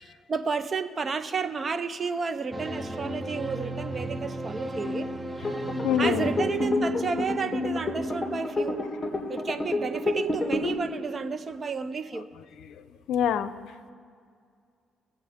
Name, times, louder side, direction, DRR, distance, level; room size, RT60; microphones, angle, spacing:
voice 1, 0.0-5.1 6.0-8.8 9.3-12.3, right 5 dB, 40° right, 11 dB, 0.7 m, -31 dB
sound 1, 2.5-8.1, right 1 dB, 10° right, 0.7 m, -35 dB
voice 2, 5.4-6.3 12.6-12.8 13.1-13.5, left 8 dB, 85° left, 13 dB, 0.6 m, -27 dB
sound 2, 5.4-10.7, left 2 dB, 15° left, 2.3 m, -29 dB
21.5 x 7.8 x 3.6 m, 2.2 s
cardioid pair, 90°, 0 cm